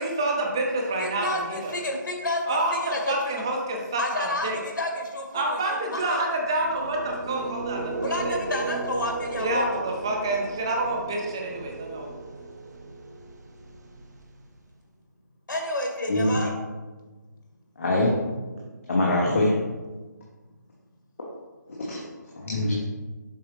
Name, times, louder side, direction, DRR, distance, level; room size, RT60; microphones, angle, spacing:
voice 1, 0.0-1.7 2.5-4.6 5.3-8.4 9.4-12.1, right 2 dB, 15° right, 1 dB, 0.4 m, -28 dB
voice 2, 1.0-3.4 4.0-5.6 5.9-6.2 8.0-9.8 15.5-16.5, left 1 dB, 85° left, 1 dB, 1.8 m, -30 dB
sound 1, 6.5-14.6, right 3 dB, 60° right, 1.0 m, -35 dB
voice 3, 17.8-18.1 18.8-19.6 21.7-22.1 22.5-22.8, left 1 dB, 45° left, -3 dB, 1.1 m, -23 dB
7.2 x 4.9 x 3.2 m, 1.3 s
hypercardioid pair, 175°, 10 cm